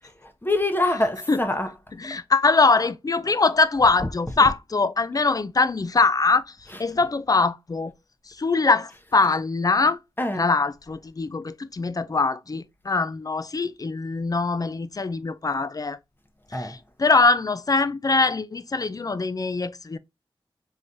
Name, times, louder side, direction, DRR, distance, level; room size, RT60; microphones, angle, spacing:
voice 1, 0.2-1.8 3.8-4.5 6.7-6.8 8.9-9.3 10.2-10.5 16.5-16.8, left 1 dB, 20° left, 0.8 m, -27 dB
voice 2, 2.0-7.9 8.3-10.0 10.4-16.0 16.5-20.0, left 3 dB, 40° left, 0.4 m, -22 dB
3.7 x 3.1 x 2.6 m
cardioid pair, 50°, 10 cm